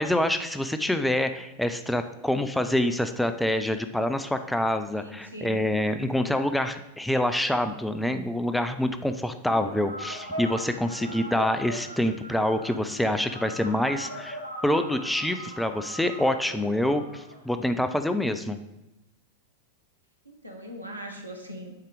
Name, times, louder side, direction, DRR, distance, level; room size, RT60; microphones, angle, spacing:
voice 1, 0.0-14.4 14.6-18.6, left 1 dB, 5° left, 8 dB, 0.4 m, -26 dB
voice 2, 4.9-5.6 20.2-21.7, equal, 85° right, 3 dB, 1.2 m, -40 dB
sound 1, 9.5-18.0, right 1 dB, 85° left, 1.0 m, -39 dB
8.2 x 4.4 x 4.8 m, 0.91 s
figure-of-eight pair, 90°, 0 cm